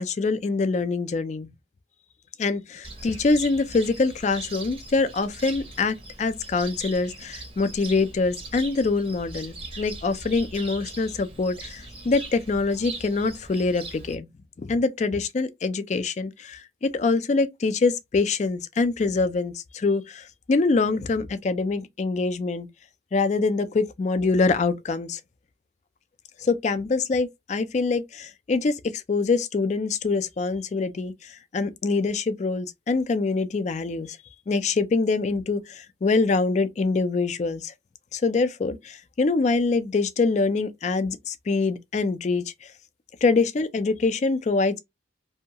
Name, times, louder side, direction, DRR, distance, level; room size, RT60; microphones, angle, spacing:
voice 1, 0.0-1.5 2.4-14.3 14.6-22.7 23.1-25.2 26.4-34.2 34.5-37.7 38.1-42.7 43.2-44.8, left 3 dB, 35° left, 0.3 m, -25 dB
Cricket, 2.8-14.1, right 2 dB, 30° right, 0.6 m, -40 dB
2.7 x 2.3 x 2.7 m
head